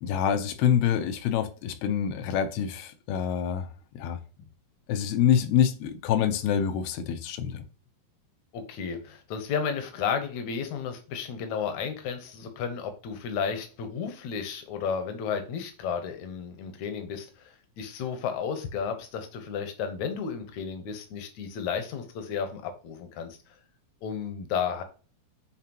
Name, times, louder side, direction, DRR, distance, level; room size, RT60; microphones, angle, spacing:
voice 1, 0.0-3.7 3.9-4.2 4.9-7.6, left 9 dB, 85° left, 2.8 m, -26 dB
voice 2, 8.5-23.4 24.0-24.8, left 6 dB, 65° left, 1.9 m, -33 dB
9.3 x 4.1 x 2.9 m
omnidirectional pair, 4.5 m